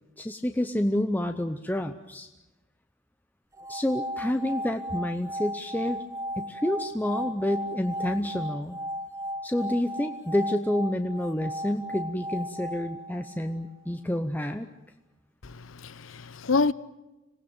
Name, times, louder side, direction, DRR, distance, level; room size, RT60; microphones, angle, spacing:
voice 1, 0.2-2.3 3.7-6.0 6.4-8.8 9.4-14.7, left 1 dB, 10° left, 0.8 m, -29 dB
sound 1, 3.5-13.7, equal, 15° right, 1.4 m, -36 dB
voice 2, 15.4-16.7, left 4 dB, 85° left, 0.9 m, -27 dB
26.0 x 18.5 x 9.0 m
head